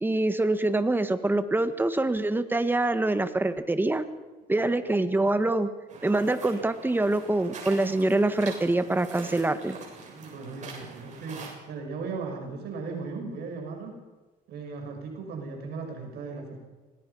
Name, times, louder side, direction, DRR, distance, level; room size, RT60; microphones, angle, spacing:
voice 1, 0.0-4.0 4.5-5.7 6.0-9.8, right 2 dB, 10° right, 10 dB, 1.6 m, -25 dB
sound 1, 5.9-11.5, right 4 dB, 45° right, 7.6 m, -44 dB
voice 2, 10.1-13.9 14.5-16.6, right 4 dB, 75° right, 2 dB, 5.7 m, -37 dB
25.5 x 19.5 x 5.7 m, 1.2 s
cardioid pair, 110°, 17 cm